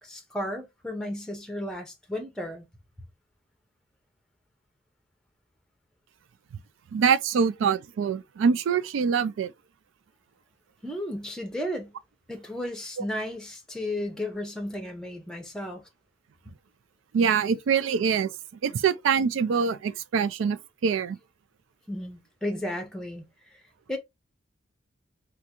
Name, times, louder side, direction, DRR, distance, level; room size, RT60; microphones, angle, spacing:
voice 1, 0.0-2.7 10.8-11.9 12.3-15.8 21.9-23.2 23.9-24.0, left 1 dB, 5° left, 0.6 m, -34 dB
voice 2, 6.9-9.5 17.1-18.3 18.6-21.2, right 6 dB, 75° right, 0.3 m, -24 dB
3.4 x 2.4 x 2.8 m
head